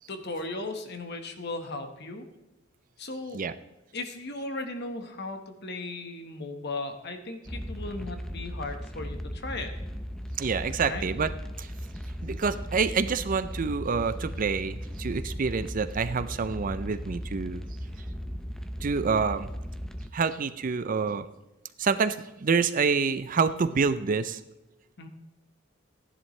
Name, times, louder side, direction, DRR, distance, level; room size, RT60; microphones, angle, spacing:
voice 1, 0.1-2.3 3.0-3.4 3.9-9.7 10.8-11.0 25.0-25.1, left 2 dB, 55° left, 6 dB, 1.3 m, -36 dB
sound 1, 7.5-20.1, equal, 5° left, 0.6 m, -37 dB
voice 2, 10.4-11.3 11.6-11.7 12.2-17.6 18.8-19.5 20.1-21.3 21.8-24.4, right 5 dB, 45° right, 12 dB, 0.5 m, -27 dB
15.5 x 10.5 x 3.2 m, 0.97 s
head